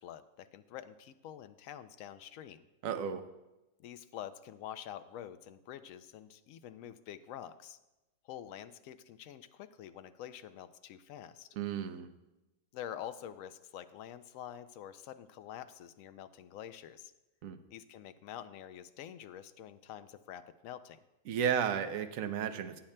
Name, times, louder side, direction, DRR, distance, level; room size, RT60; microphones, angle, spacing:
voice 1, 0.0-2.6 3.8-7.8 8.2-11.5 12.7-17.1 17.7-21.0, left 10 dB, 70° left, 11 dB, 0.9 m, -47 dB
voice 2, 2.8-3.2 11.6-12.1 17.4-17.6 21.3-22.8, right 8 dB, 65° right, 8 dB, 1.0 m, -33 dB
17.0 x 8.6 x 2.2 m, 1.0 s
omnidirectional pair, 1.6 m